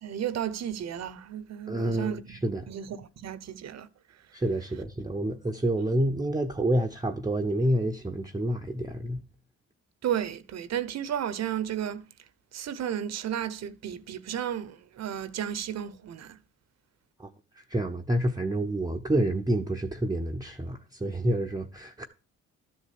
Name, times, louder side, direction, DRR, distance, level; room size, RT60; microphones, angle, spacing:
voice 1, 0.0-3.9 10.0-12.1 12.5-16.4, right 10 dB, 60° right, 1.0 m, -33 dB
voice 2, 1.7-2.7 4.3-9.2 17.2-17.3 17.6-22.1, right 1 dB, 10° right, 0.8 m, -28 dB
12.5 x 4.3 x 8.4 m
cardioid pair, 90°, 30 cm